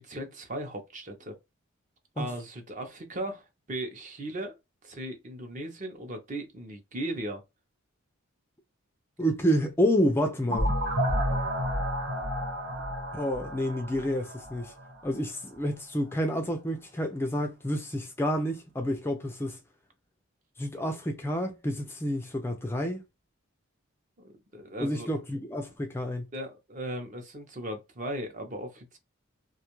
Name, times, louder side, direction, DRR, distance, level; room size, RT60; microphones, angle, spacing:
voice 1, 0.0-1.3 2.2-4.6 4.8-7.4 24.5-25.1 26.3-29.0, right 1 dB, 40° right, 0.6 m, -37 dB
voice 2, 9.2-10.7 13.1-14.7 15.0-19.6 20.6-23.0 24.8-26.3, equal, 10° left, 0.3 m, -29 dB
sound 1, 10.5-15.2, equal, 55° right, 1.0 m, -31 dB
2.5 x 2.3 x 2.9 m
head